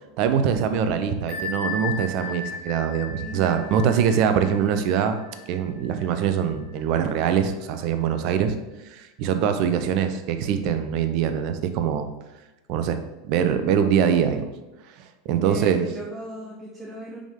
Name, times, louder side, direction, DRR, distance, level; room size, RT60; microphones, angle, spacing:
voice 1, 0.2-5.2 5.5-8.5 8.9-12.1 12.7-14.4 15.2-15.9, right 8 dB, 50° right, 8 dB, 0.6 m, -23 dB
Bell, 1.3-6.7, left 4 dB, 40° left, 1.8 m, -36 dB
voice 2, 3.1-3.8 15.4-17.2, equal, 10° right, -2 dB, 1.0 m, -37 dB
5.2 x 5.1 x 3.7 m, 1.1 s
figure-of-eight pair, 80°, 0 cm